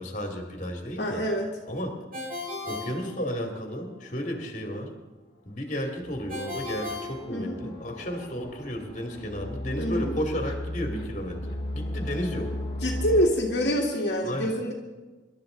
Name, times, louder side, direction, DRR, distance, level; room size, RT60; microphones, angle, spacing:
voice 1, 0.0-1.2 1.7-2.0 2.6-4.9 5.5-12.5 14.2-14.6, equal, 40° left, 2 dB, 2.5 m, -33 dB
voice 2, 1.0-1.5 7.3-7.6 9.8-10.1 12.8-14.7, equal, 65° left, -2 dB, 1.9 m, -26 dB
Ringtone, 2.1-3.8 6.3-8.0, left 2 dB, 50° right, 6.4 m, -37 dB
sound 1, 6.0-13.3, left 1 dB, 25° left, 2.2 m, -36 dB
25.5 x 12.5 x 3.9 m, 1.2 s
head